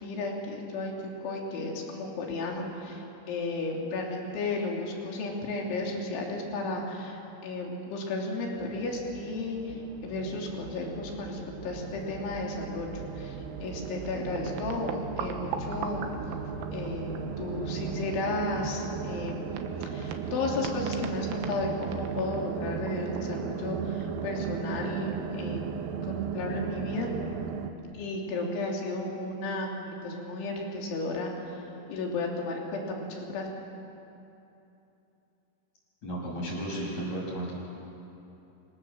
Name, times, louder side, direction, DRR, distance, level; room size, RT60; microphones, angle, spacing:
voice 1, 0.0-16.1 16.7-25.6 26.0-27.1 27.9-33.5, left 2 dB, 75° left, 0 dB, 5.7 m, -34 dB
sound 1, 8.5-27.7, right 6 dB, 70° right, 2.2 m, -36 dB
sound 2, 11.8-12.2 12.5-12.6 13.5-13.6 13.8-17.6 17.9-25.6, right 8 dB, 90° right, 4.0 m, -41 dB
voice 2, 36.0-37.5, right 1 dB, 35° left, -3 dB, 8.5 m, -33 dB
29.0 x 26.5 x 7.5 m, 2.9 s
omnidirectional pair, 5.6 m